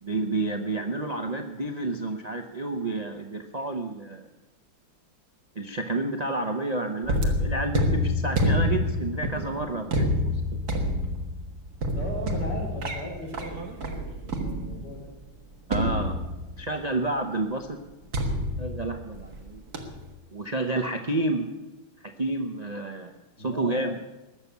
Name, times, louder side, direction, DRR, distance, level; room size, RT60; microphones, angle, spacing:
voice 1, 0.0-4.2 5.6-10.6 15.7-16.2 16.6-17.8 18.3-19.6 20.3-21.5 22.2-23.1 23.4-24.0, right 2 dB, 80° right, 4 dB, 0.3 m, -30 dB
sound 1, 7.0-15.0 15.7-16.7 18.1-19.4 19.7-20.1, left 1 dB, 50° right, 2.0 m, -27 dB
voice 2, 11.9-15.1 23.4-23.8, equal, 55° left, 0 dB, 4.5 m, -38 dB
20.0 x 6.9 x 8.3 m, 1.1 s
omnidirectional pair, 2.2 m